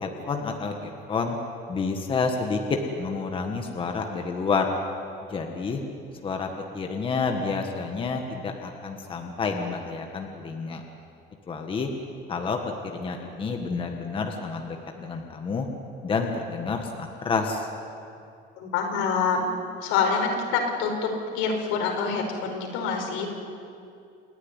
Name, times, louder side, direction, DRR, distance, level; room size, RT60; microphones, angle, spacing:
voice 1, 0.0-1.4 1.7-2.6 3.0-4.7 5.3-5.8 6.2-6.5 6.7-10.8 11.5-11.9 12.3-12.6 12.9-15.7 16.0-17.7, left 4 dB, 25° left, 3 dB, 1.7 m, -29 dB
voice 2, 18.6-19.5 19.8-21.1 21.3-23.3, left 5 dB, 90° left, 1 dB, 5.0 m, -26 dB
28.5 x 11.5 x 10.0 m, 2.5 s
cardioid pair, 160°, 21 cm